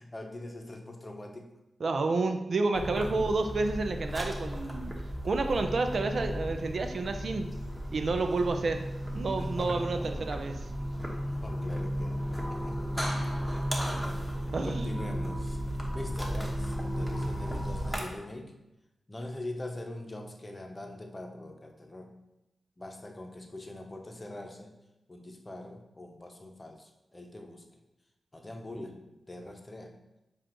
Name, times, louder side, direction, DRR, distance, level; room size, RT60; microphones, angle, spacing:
voice 1, 0.0-1.6 2.9-3.3 8.2-8.5 9.4-10.3 11.0-15.6 15.9-18.6 19.1-22.2 22.8-24.7 25.1-27.8 28.3-29.9, left 1 dB, 30° left, 3 dB, 0.7 m, -43 dB
voice 2, 1.8-4.9 5.2-7.5 7.9-8.8 9.1-10.5 14.5-14.9, right 3 dB, 65° right, 7 dB, 0.4 m, -30 dB
sound 1, 2.7-18.0, equal, 5° right, 1.0 m, -34 dB
7.2 x 2.4 x 3.0 m, 0.93 s
cardioid pair, 55°, 0 cm